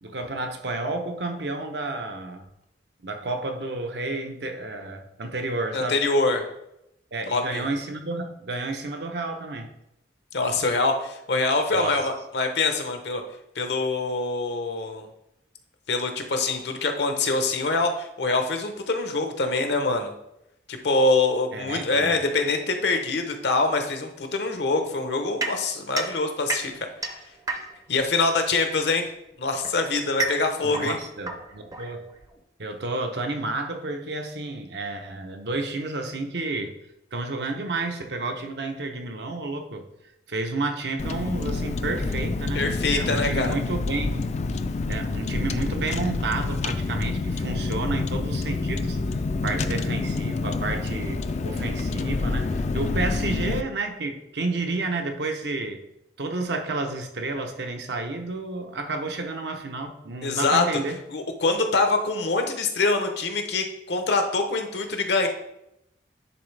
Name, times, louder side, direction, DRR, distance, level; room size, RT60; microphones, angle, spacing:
voice 1, 0.0-2.5 3.0-6.0 7.1-9.7 11.7-12.0 21.5-22.2 30.6-32.0 32.6-36.7 37.1-39.8 40.3-44.3 44.9-55.8 56.2-61.0, right 2 dB, 70° right, 4 dB, 0.8 m, -31 dB
voice 2, 5.7-6.4 7.3-7.6 10.3-13.2 13.6-15.1 15.9-20.1 20.7-26.9 27.9-29.1 29.4-31.0 42.5-43.6 60.2-60.8 61.1-65.3, left 3 dB, 70° left, 5 dB, 0.8 m, -24 dB
sound 1, 25.4-28.0 29.0-32.4, right 3 dB, 20° right, 0.6 m, -32 dB
Car, 41.0-53.6, left 3 dB, 40° left, 0.3 m, -27 dB
10.0 x 4.0 x 3.3 m, 0.85 s
head